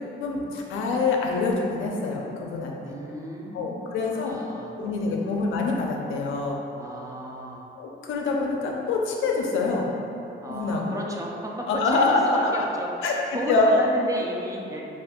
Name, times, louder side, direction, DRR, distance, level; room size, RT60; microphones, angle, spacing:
voice 1, 0.2-2.9 3.5-4.4 4.8-6.6 7.8-9.9 10.5-10.8 11.7-12.7 13.0-13.1 13.5-13.8, left 3 dB, 80° left, 0 dB, 0.5 m, -25 dB
voice 2, 2.8-5.5 6.8-7.7 10.4-14.8, right 1 dB, 15° right, -2 dB, 0.4 m, -34 dB
2.6 x 2.4 x 3.6 m, 2.8 s
cardioid pair, 90°, 20 cm